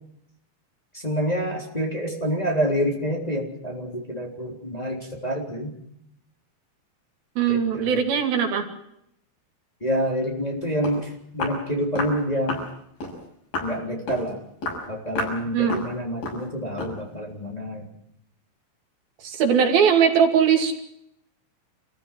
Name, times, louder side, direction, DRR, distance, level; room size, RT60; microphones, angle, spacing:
voice 1, 0.9-5.8 7.5-8.0 9.8-12.6 13.6-14.4 14.9-17.8, equal, 10° left, 0 dB, 3.3 m, -27 dB
voice 2, 7.4-8.7 15.5-15.8 19.2-20.8, right 7 dB, 85° right, 4 dB, 4.3 m, -20 dB
Walk footsteps, 10.5-10.6 10.8-11.0 11.4-11.6 12.0-12.2 12.5-12.7 13.0-13.2 13.5-13.7 14.1-14.3 14.6-14.8 15.2-15.4 15.7-15.9 16.2-16.4 16.8-17.0, left 2 dB, 80° left, 8.2 m, -30 dB
27.0 x 15.5 x 7.6 m, 0.75 s
omnidirectional pair, 4.1 m